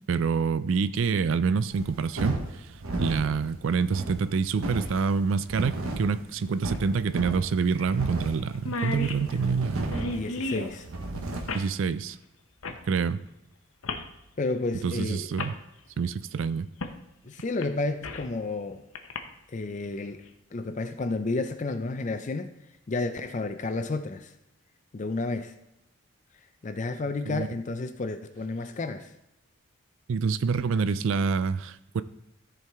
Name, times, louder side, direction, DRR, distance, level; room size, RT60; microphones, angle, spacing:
voice 1, 0.1-2.7 3.0-10.0 11.5-12.2 12.9-13.2 14.8-15.5 16.0-16.7 27.3-27.5 30.1-32.0, right 5 dB, 65° right, 14 dB, 0.4 m, -27 dB
sound 1, 1.7-11.6, right 2 dB, 85° right, 1.1 m, -35 dB
sound 2, 4.8-4.9 6.7-6.8 7.1-7.2 7.8-8.0 8.3-8.4 8.5-10.7 11.5-11.7 12.6-12.8 13.8-14.1 14.9-15.0 15.4-15.6 16.8-17.0 17.4-18.3 19.0-19.2, left 2 dB, 75° left, 0.8 m, -34 dB
voice 2, 10.1-10.9 14.4-15.3 17.2-18.8 19.5-22.5 22.9-24.3 24.9-25.5 26.6-29.1, left 3 dB, 35° left, 9 dB, 0.4 m, -31 dB
13.5 x 4.7 x 3.5 m, 0.88 s
head